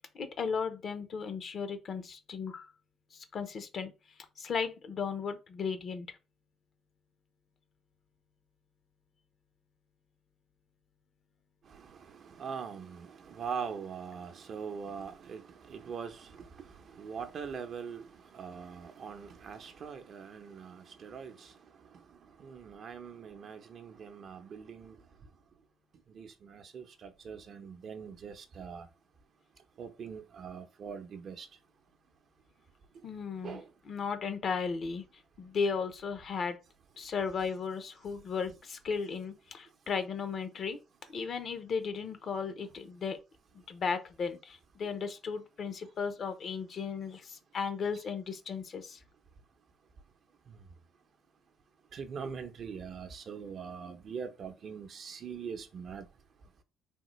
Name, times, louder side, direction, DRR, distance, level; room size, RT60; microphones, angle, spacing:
voice 1, 0.2-2.6 3.3-3.9 4.4-6.1 33.0-33.6 33.9-35.0 35.4-36.6 37.0-40.8 41.1-43.2 43.7-44.4 44.8-47.2 47.5-48.8, left 5 dB, 55° left, 0.7 m, -35 dB
voice 2, 12.4-15.4 15.7-16.2 17.0-18.0 18.3-21.3 22.4-24.9 26.2-28.9 29.8-31.5 33.4-33.6 51.9-56.0, right 6 dB, 55° right, 0.6 m, -42 dB
3.5 x 2.2 x 3.1 m
supercardioid pair, 75°, 0 cm